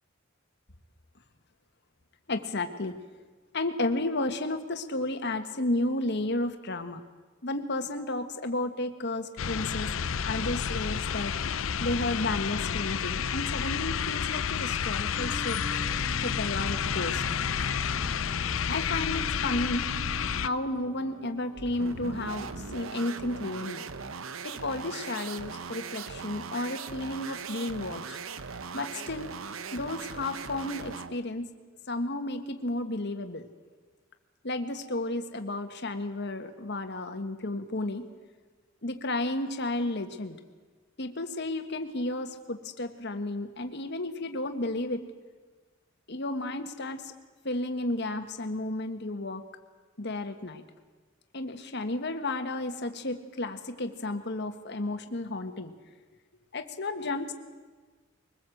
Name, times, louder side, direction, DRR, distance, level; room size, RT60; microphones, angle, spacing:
voice 1, 2.3-3.0 3.5-7.0 7.4-9.9 10.2-11.3 11.8-15.6 16.2-17.2 18.7-19.9 20.4-23.8 24.4-28.2 28.7-29.3 29.7-31.5 31.9-33.5 34.4-38.0 38.8-40.4 41.0-45.0 46.1-47.1 47.4-49.4 50.0-50.6 51.3-55.7 56.5-57.3, left 2 dB, 55° left, 7 dB, 1.6 m, -32 dB
sound 1, 9.4-20.5, left 7 dB, 75° left, 0.6 m, -30 dB
sound 2, 15.1-22.8, right 3 dB, 35° right, 6.7 m, -44 dB
sound 3, 21.5-31.2, right 5 dB, 80° right, 0.9 m, -40 dB
23.0 x 20.5 x 7.9 m, 1.4 s
head